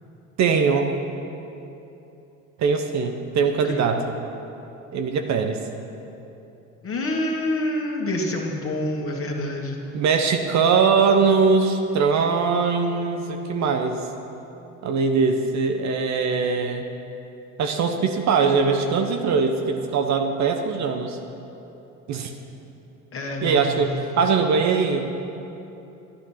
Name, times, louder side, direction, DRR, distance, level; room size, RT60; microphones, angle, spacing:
voice 1, 0.4-0.9 2.6-4.0 4.9-5.6 9.9-14.1 14.8-16.9 17.6-21.2 22.1-22.3 23.4-25.1, right 5 dB, 45° right, 5 dB, 1.1 m, -21 dB
voice 2, 6.8-9.8 23.1-23.8, left 1 dB, 35° left, 0 dB, 2.3 m, -27 dB
12.0 x 11.5 x 5.8 m, 2.9 s
figure-of-eight pair, 60°, 39 cm